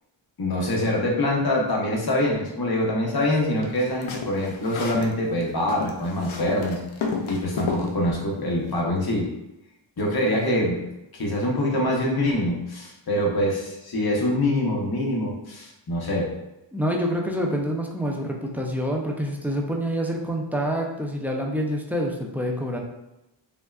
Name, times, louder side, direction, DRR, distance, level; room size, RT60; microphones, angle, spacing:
voice 1, 0.4-6.8 7.3-9.3 10.0-10.8 11.1-16.3, left 1 dB, 50° left, -2 dB, 0.9 m, -24 dB
sound 1, 3.6-5.1 5.4-7.9, left 4 dB, 75° left, 0.6 m, -31 dB
voice 2, 16.7-22.8, equal, 5° right, 0 dB, 0.4 m, -27 dB
3.5 x 2.2 x 2.3 m, 0.91 s
wide cardioid pair, 60°, 48 cm